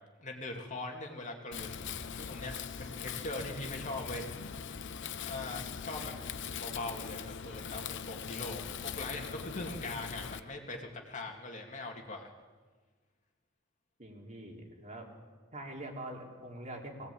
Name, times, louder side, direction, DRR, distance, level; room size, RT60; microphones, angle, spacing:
voice 1, 0.2-1.8 2.2-4.3 5.2-6.1 6.5-12.3, left 2 dB, 35° left, 2 dB, 2.4 m, -41 dB
Wind, 1.5-10.4, left 7 dB, 60° left, 0.9 m, -41 dB
voice 2, 14.0-15.1 15.5-17.1, right 1 dB, 35° right, 0 dB, 3.3 m, -44 dB
22.5 x 18.0 x 8.6 m, 1.5 s
head